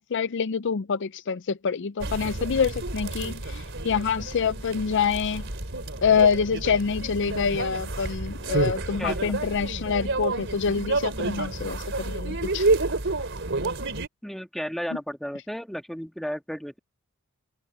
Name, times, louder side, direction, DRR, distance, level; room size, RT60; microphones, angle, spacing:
voice 1, 0.0-5.4 6.0-12.7, left 6 dB, 55° left, 0.5 m, -26 dB
sound 1, 2.0-14.1, right 2 dB, 55° right, 3.9 m, -29 dB
voice 2, 9.0-9.3 14.2-16.8, equal, ahead, 1.5 m, -33 dB
head